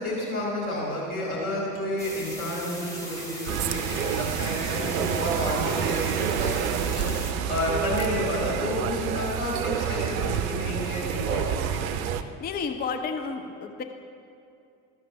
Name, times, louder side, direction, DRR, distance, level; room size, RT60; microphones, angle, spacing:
voice 1, 0.0-11.9, left 1 dB, 80° left, -5 dB, 2.7 m, -31 dB
sound 1, 1.7-3.6, left 1 dB, 45° left, 2.0 m, -46 dB
sound 2, 2.0-7.3, equal, 5° left, 2.3 m, -39 dB
sound 3, 3.5-12.2, right 9 dB, 70° right, 0.5 m, -28 dB
voice 2, 12.2-13.8, left 5 dB, 20° left, 5 dB, 0.6 m, -32 dB
12.5 x 5.9 x 5.2 m, 2.5 s
figure-of-eight pair, 65°, 42 cm